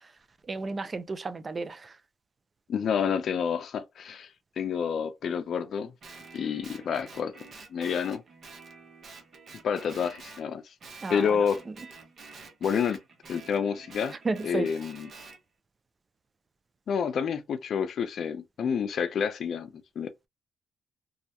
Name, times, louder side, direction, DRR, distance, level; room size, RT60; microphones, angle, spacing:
voice 1, 0.5-1.9 11.0-11.4 14.3-14.7, right 3 dB, 30° right, 0.4 m, -32 dB
voice 2, 2.7-4.3 4.6-5.9 6.3-8.2 9.6-10.6 11.1-11.6 12.6-13.0 13.3-14.1 14.4-15.1 16.9-20.1, left 7 dB, 60° left, 0.4 m, -29 dB
Guitar, 6.0-10.5 10.8-15.4, right 4 dB, 50° right, 0.8 m, -48 dB
2.3 x 2.1 x 2.8 m
cardioid pair, 90°, 0 cm